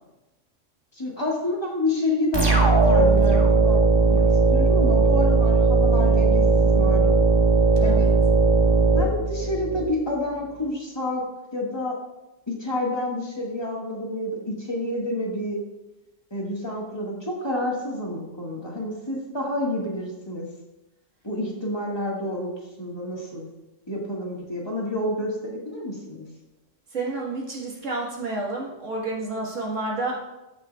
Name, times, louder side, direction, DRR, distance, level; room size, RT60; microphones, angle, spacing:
voice 1, 0.9-3.8 4.1-7.2 7.8-8.1 8.9-11.2 11.5-12.0 12.5-15.6 16.3-20.5 21.2-22.5 22.8-23.5 23.9-26.3, left 1 dB, 20° left, -3 dB, 1.8 m, -29 dB
sound 1, 2.3-9.8, right 4 dB, 20° right, 1.3 m, -18 dB
voice 2, 7.8-8.1 26.9-30.2, right 2 dB, 80° right, -3 dB, 1.9 m, -30 dB
15.0 x 5.7 x 2.3 m, 0.99 s
omnidirectional pair, 1.3 m